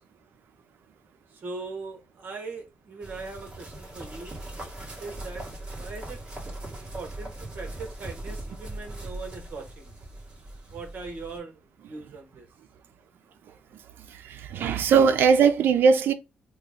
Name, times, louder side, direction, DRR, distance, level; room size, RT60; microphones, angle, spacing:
voice 1, 1.3-4.6 5.0-5.5 5.8-6.2 6.8-9.9 10.7-11.6 11.9-12.5, right 3 dB, 60° right, 1.3 m, -40 dB
sound 1, 3.0-11.4, right 1 dB, 30° right, 1.7 m, -40 dB
voice 2, 14.1-16.1, right 6 dB, 80° right, 0.6 m, -20 dB
3.1 x 2.3 x 3.7 m
cardioid pair, 125°, 3 cm